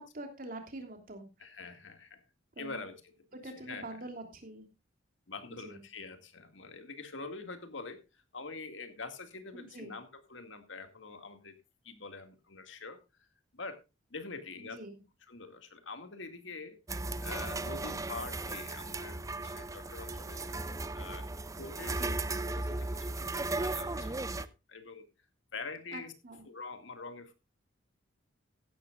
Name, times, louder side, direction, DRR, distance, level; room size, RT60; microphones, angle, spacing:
voice 1, 0.0-1.3 2.6-2.8 3.4-4.6 5.6-5.8 9.5-9.9 14.6-15.0 21.8-22.2 25.9-26.4, right 2 dB, 45° right, 5 dB, 3.1 m, -45 dB
voice 2, 1.4-2.2 2.6-4.0 5.3-11.6 11.8-13.3 13.5-13.8 14.1-14.8 15.3-16.8 17.2-20.5 20.9-21.3 21.6-22.0 22.4-25.1 25.5-26.1 26.5-27.3, left 4 dB, 70° left, 8 dB, 2.1 m, -45 dB
sound 1, 16.9-24.5, right 2 dB, 15° right, 0.5 m, -36 dB
15.5 x 12.0 x 2.4 m, 0.26 s
head